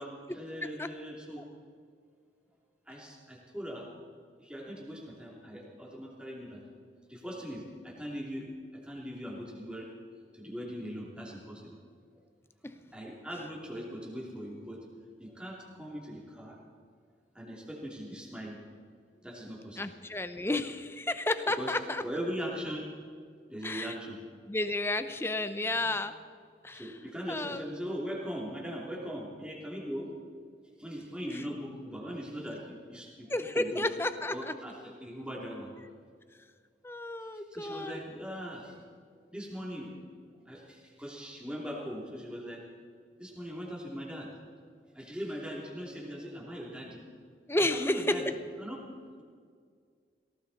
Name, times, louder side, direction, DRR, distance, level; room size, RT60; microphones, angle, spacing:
voice 1, 0.0-1.4 2.9-3.9 4.4-6.6 7.1-8.4 8.8-9.9 10.3-11.7 12.9-14.8 15.2-16.6 17.3-18.6 19.2-19.9 21.6-21.7 22.0-22.9 23.5-24.2 25.8-25.9 26.7-30.1 30.8-33.8 34.3-35.7 37.5-38.7 39.3-39.9 40.5-42.6 43.2-44.3 44.9-47.1 47.7-48.3 48.6-48.8, equal, 5° right, -3 dB, 2.9 m, -40 dB
voice 2, 19.8-22.0 23.6-23.9 24.5-26.2 26.6-26.9 27.3-27.7 31.3-31.4 33.3-34.5 36.8-38.0 47.5-48.2, left 2 dB, 15° left, 10 dB, 0.7 m, -32 dB
18.0 x 18.0 x 4.2 m, 2.1 s
head